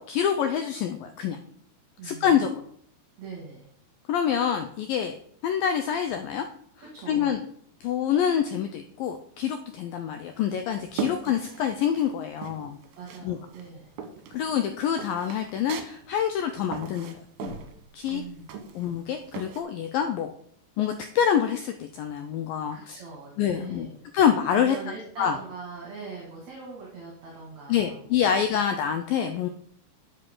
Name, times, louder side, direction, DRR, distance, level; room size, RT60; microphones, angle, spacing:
voice 1, 0.0-1.4 2.0-2.5 4.1-5.1 5.4-6.5 7.1-7.4 7.8-12.8 13.2-13.4 14.3-17.6 17.9-18.2 18.8-20.3 20.8-23.0 23.4-23.9 24.1-24.8 25.2-25.4 27.7-29.5, left 8 dB, 85° left, 6 dB, 2.0 m, -26 dB
voice 2, 2.0-2.4 3.2-3.7 6.8-7.4 10.9-11.0 13.0-13.9 18.1-18.5 22.7-23.9 24.6-28.2, right 4 dB, 45° right, -2 dB, 3.2 m, -41 dB
sound 1, 10.2-12.1 12.4-13.3 13.5-19.6, right 7 dB, 70° right, 2.8 m, -38 dB
12.0 x 7.8 x 3.9 m, 0.63 s
omnidirectional pair, 4.8 m